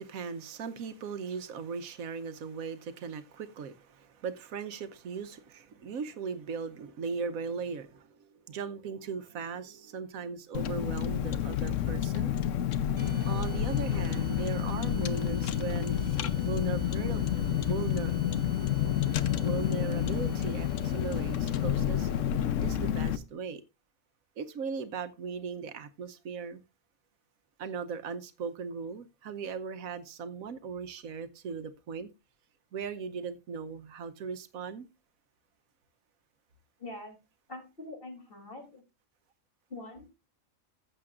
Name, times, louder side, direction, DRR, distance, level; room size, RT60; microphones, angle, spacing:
voice 1, 0.0-12.3 13.3-16.0 16.4-17.2 17.6-18.1 19.4-22.1 22.6-23.6 24.4-26.6 27.6-32.1 32.7-34.9, right 5 dB, 90° right, 1.3 m, -38 dB
Car, 10.5-23.2, left 10 dB, 70° left, 1.0 m, -29 dB
sound 1, 13.0-22.3, right 4 dB, 70° right, 1.7 m, -44 dB
voice 2, 36.8-37.2 37.5-38.8 39.7-40.1, left 2 dB, 40° left, 3.4 m, -44 dB
14.5 x 7.6 x 2.5 m
omnidirectional pair, 1.4 m